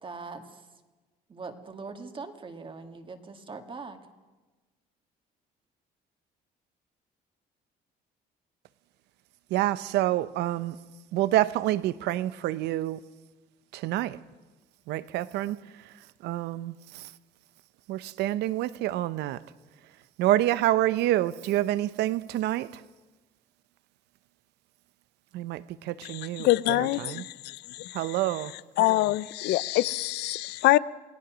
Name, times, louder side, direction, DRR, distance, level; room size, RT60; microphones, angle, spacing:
voice 1, 0.0-0.7 1.3-4.0, right 4 dB, 30° right, 1.9 m, -41 dB
voice 2, 9.5-10.8 11.1-13.0 13.7-14.2 14.9-15.6 16.2-17.1 17.9-19.4 20.2-22.8 25.3-27.2 27.9-28.5, right 14 dB, 80° right, 0.8 m, -27 dB
voice 3, 26.0-28.2 28.8-30.8, left 17 dB, 80° left, 0.6 m, -25 dB
29.0 x 18.0 x 6.2 m
cardioid pair, 110°, 17 cm